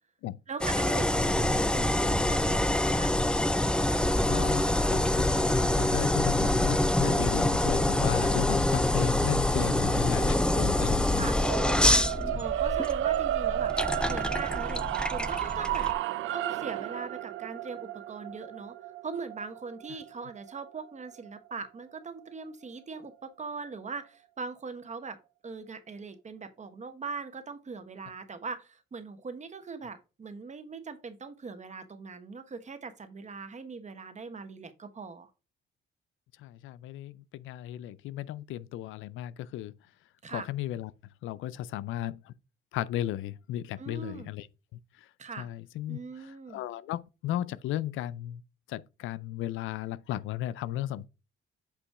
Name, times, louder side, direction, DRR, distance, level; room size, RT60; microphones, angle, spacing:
voice 1, 0.5-3.1 9.6-10.7 11.1-11.3 11.8-15.9 16.3-18.8 19.0-25.2 25.4-35.3 40.2-40.5 43.8-44.3 45.2-45.5 45.9-46.6, right 4 dB, 35° right, 1.2 m, -41 dB
sound 1, 0.6-15.9, left 1 dB, 5° left, 0.4 m, -26 dB
voice 2, 4.2-11.3 12.3-12.4 36.4-39.7 40.3-40.9 41.2-42.3 42.7-44.5 44.7-45.1 45.4-46.0 46.5-48.4 48.7-51.1, left 12 dB, 80° left, 0.5 m, -35 dB
sound 2, 11.3-21.5, right 13 dB, 80° right, 0.5 m, -33 dB
8.3 x 3.0 x 4.8 m
cardioid pair, 90°, 20 cm